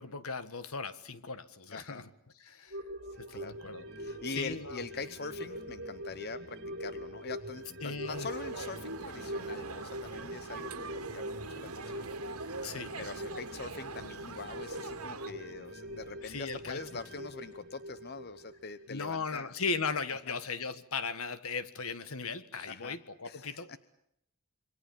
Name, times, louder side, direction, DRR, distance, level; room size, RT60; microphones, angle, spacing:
voice 1, 0.0-2.1 2.4-2.8 3.2-4.8 7.8-8.3 12.6-12.9 16.2-16.8 18.9-23.8, left 4 dB, 75° left, 13 dB, 1.6 m, -37 dB
voice 2, 1.7-2.0 3.1-3.6 4.0-12.1 12.4-12.6 13.0-19.5 20.3-20.4 22.7-23.0 23.2-23.8, left 4 dB, 45° left, 14 dB, 0.9 m, -43 dB
sound 1, 2.7-19.5 19.8-19.9, equal, 50° right, 6.2 m, -43 dB
sound 2, 8.1-15.3, right 4 dB, 85° right, 2.3 m, -43 dB
27.0 x 25.0 x 7.2 m, 0.78 s
head